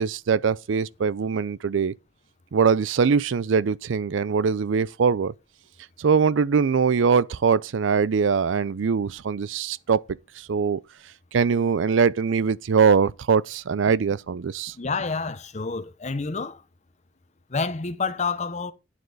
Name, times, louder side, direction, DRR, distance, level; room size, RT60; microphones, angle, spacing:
voice 1, 0.0-1.9 2.5-5.3 6.0-10.0 10.4-10.8 11.3-14.7, right 6 dB, 85° right, 0.5 m, -22 dB
voice 2, 14.7-16.6 17.5-18.7, left 4 dB, 40° left, 0.8 m, -28 dB
9.1 x 7.9 x 3.9 m
head